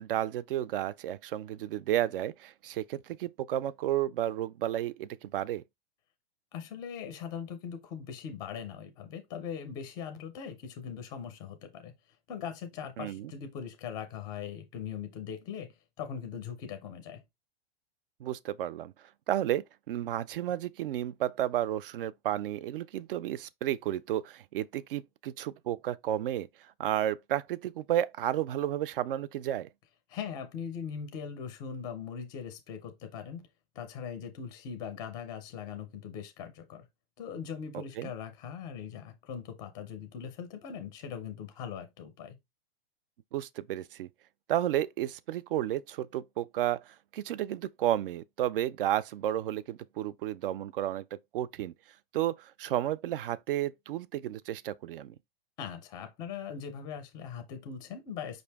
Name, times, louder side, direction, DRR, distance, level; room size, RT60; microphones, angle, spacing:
voice 1, 0.0-5.6 13.0-13.3 18.2-18.9 19.3-26.5 26.8-29.7 37.7-38.1 43.3-44.1 44.5-51.7 52.1-55.1, right 12 dB, 65° right, 0.4 m, -32 dB
voice 2, 6.5-11.9 12.3-17.2 30.1-33.5 33.7-36.9 37.2-42.4 55.6-58.4, left 7 dB, 15° left, 0.5 m, -40 dB
5.2 x 2.6 x 3.3 m
supercardioid pair, 165°, 30 cm